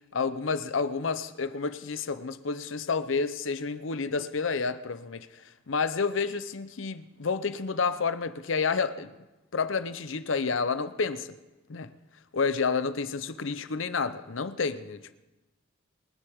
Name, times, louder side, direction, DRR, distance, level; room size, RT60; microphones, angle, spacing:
voice 1, 0.1-9.1 9.5-11.3 11.7-11.9 12.3-15.1, left 5 dB, 75° left, 0.7 m, -30 dB
27.0 x 10.0 x 3.6 m
head